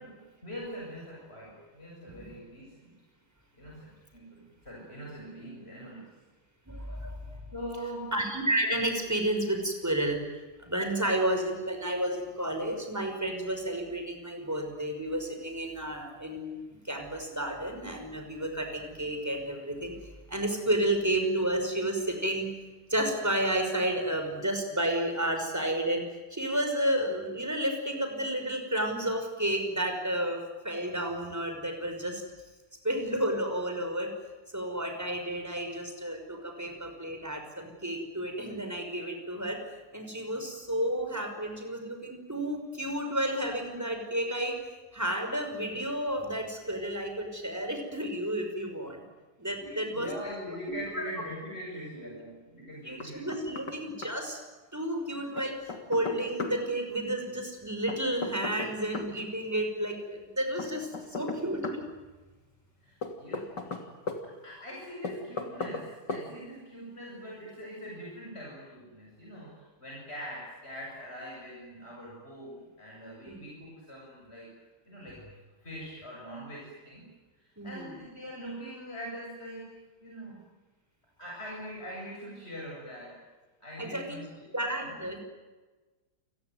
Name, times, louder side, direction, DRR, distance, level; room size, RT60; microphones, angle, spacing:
voice 1, 0.0-2.9 3.5-6.1 7.5-8.1 49.6-53.6 62.8-63.9 64.2-74.5 74.8-75.3 75.6-77.1 77.6-80.4 81.2-83.2 83.6-84.9, equal, 35° left, -4 dB, 7.9 m, -43 dB
voice 2, 6.7-7.1 8.1-22.5 22.9-26.0 26.3-32.2 32.8-34.1 34.5-39.6 39.9-44.6 44.9-49.0 49.4-50.1 50.7-51.1 52.8-54.4 54.7-61.8 73.2-73.4 77.6-77.9 83.8-84.2 84.5-85.2, right 1 dB, 10° right, 4 dB, 5.7 m, -31 dB
Knock, 53.0-53.8 54.0-54.1 55.4-56.6 57.9-59.1 60.6-61.8 63.0-64.2 65.0-65.8 66.1-66.3, left 3 dB, 80° left, 3.6 m, -36 dB
29.0 x 20.5 x 9.5 m, 1.2 s
omnidirectional pair, 1.9 m